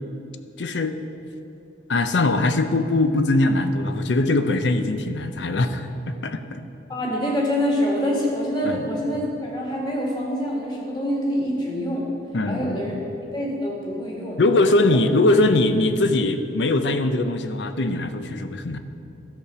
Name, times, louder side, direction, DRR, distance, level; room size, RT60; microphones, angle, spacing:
voice 1, 0.6-1.0 1.9-5.9 6.2-6.6 8.6-8.8 12.3-13.1 14.4-18.8, left 2 dB, 80° left, 9 dB, 0.6 m, -21 dB
voice 2, 6.9-12.1 12.5-13.0 13.3-14.4 14.9-15.0, equal, 25° left, -3 dB, 1.9 m, -25 dB
13.0 x 5.0 x 6.8 m, 2.8 s
head